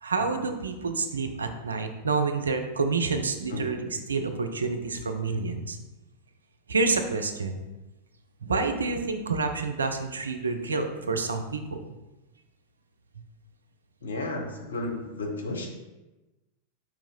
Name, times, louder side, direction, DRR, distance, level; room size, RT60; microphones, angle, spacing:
voice 1, 0.0-5.8 6.7-7.6 8.4-11.8, right 4 dB, 75° right, 6 dB, 0.4 m, -28 dB
voice 2, 14.0-15.7, left 2 dB, 70° left, 1 dB, 0.8 m, -33 dB
4.8 x 3.0 x 3.6 m, 1.1 s
figure-of-eight pair, 90°, 0 cm